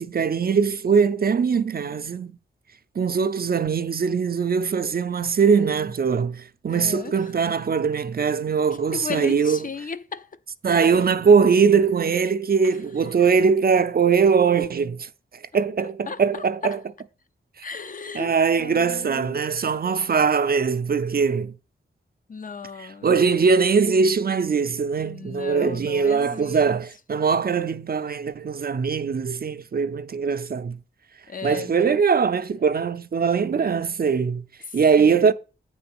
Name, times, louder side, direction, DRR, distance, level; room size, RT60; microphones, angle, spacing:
voice 1, 0.0-2.4 3.0-9.6 10.6-16.8 17.6-17.7 18.1-21.5 22.8-30.8 31.4-34.4 34.7-35.3, right 5 dB, 45° right, 0.5 m, -21 dB
voice 2, 6.7-7.3 8.9-10.4 10.7-11.1 12.6-12.8 13.2-13.3 15.8-16.8 17.6-19.4 22.3-23.5 25.0-26.8 31.3-31.9 34.6-35.3, left 5 dB, 40° left, 0.5 m, -36 dB
8.7 x 3.8 x 6.0 m
wide cardioid pair, 80°, 21 cm